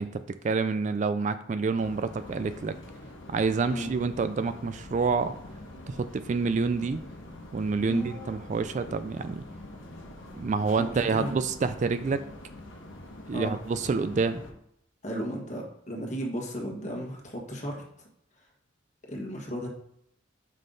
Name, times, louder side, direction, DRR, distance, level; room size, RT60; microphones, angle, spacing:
voice 1, 0.0-2.8 3.3-5.4 5.9-7.0 7.5-9.4 10.4-12.2 13.3-14.4, right 4 dB, 40° right, 11 dB, 0.3 m, -28 dB
sound 1, 1.8-14.5, left 1 dB, 80° left, 1.1 m, -45 dB
voice 2, 10.8-11.3 13.3-13.5 15.0-17.8 19.0-19.7, equal, 40° left, -1 dB, 1.5 m, -34 dB
5.5 x 5.4 x 3.9 m, 0.73 s
head